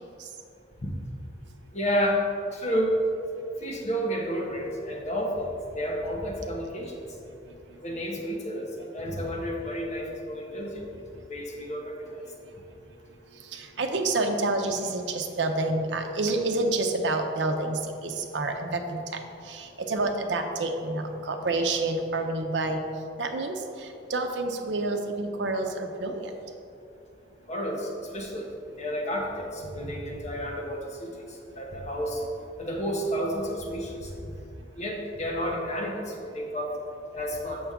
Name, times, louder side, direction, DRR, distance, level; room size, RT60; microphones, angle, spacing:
voice 1, 1.7-2.2 2.5-2.9 3.6-5.5 5.7-6.9 7.8-10.8 11.3-12.2 27.5-27.9 28.1-28.4 28.8-31.1 31.5-32.2 32.6-34.1 34.8-36.7 37.1-37.6, equal, 40° left, -1 dB, 1.1 m, -30 dB
voice 2, 13.3-22.8 23.2-26.3, right 2 dB, 85° right, 4 dB, 0.6 m, -29 dB
7.0 x 6.1 x 3.6 m, 2.6 s
head